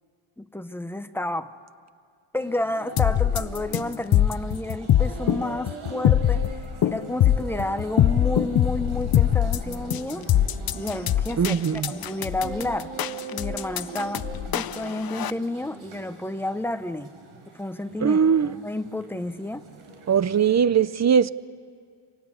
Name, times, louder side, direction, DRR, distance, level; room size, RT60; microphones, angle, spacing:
voice 1, 0.4-1.5 2.3-6.5 6.8-10.3 10.7-12.9 13.3-17.1 17.5-19.6, left 1 dB, 5° left, 11 dB, 0.7 m, -31 dB
sound 1, 2.4-20.7, right 4 dB, 80° right, 6.2 m, -41 dB
sound 2, 3.0-15.3, left 11 dB, 50° left, 0.6 m, -22 dB
voice 2, 11.4-11.9 18.0-18.5 20.1-21.3, right 7 dB, 35° right, 17 dB, 0.6 m, -20 dB
27.0 x 26.0 x 8.4 m, 2.2 s
wide cardioid pair, 135°, 48 cm